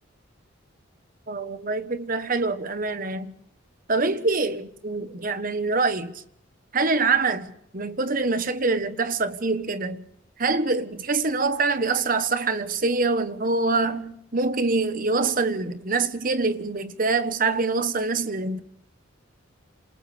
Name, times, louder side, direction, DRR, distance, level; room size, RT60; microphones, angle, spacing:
voice 1, 1.3-3.3 3.9-6.1 6.7-10.0 10.4-18.6, right 3 dB, 45° right, 1.3 m, -25 dB
27.5 x 27.5 x 3.5 m
head